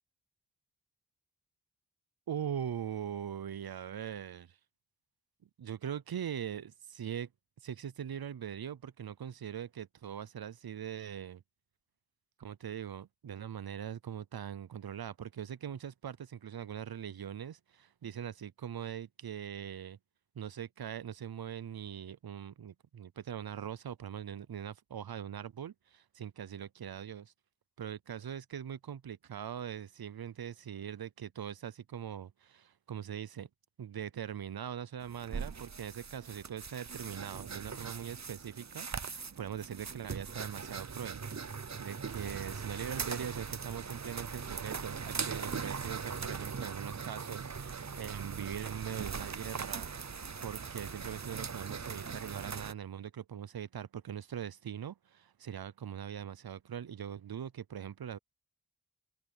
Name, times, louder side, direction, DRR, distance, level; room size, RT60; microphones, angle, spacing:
voice 1, 2.3-4.6 5.6-7.3 7.6-11.4 12.4-20.0 20.4-27.3 27.8-33.5 33.8-41.2 41.8-49.9 50.4-58.2, right 9 dB, 85° right, 0.5 m, -41 dB
sound 1, 35.0-52.7, right 5 dB, 50° right, 0.7 m, -40 dB
wide cardioid pair, 55°, 36 cm